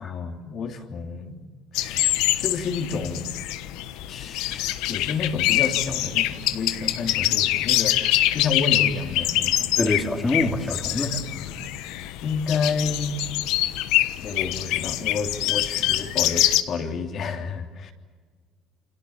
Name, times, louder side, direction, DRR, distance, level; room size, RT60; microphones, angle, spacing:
voice 1, 0.0-1.4 1.7-3.4 4.1-8.0 8.3-9.7 10.9-11.0 11.3-11.6 12.2-13.1 14.2-17.9, left 5 dB, 50° left, 3 dB, 3.3 m, -30 dB
sound 1, 1.7-16.6, left 15 dB, 85° left, 1.3 m, -25 dB
voice 2, 9.8-11.1, left 2 dB, 20° left, 3 dB, 2.8 m, -25 dB
28.5 x 26.0 x 7.4 m, 1.6 s
cardioid pair, 115°, 0 cm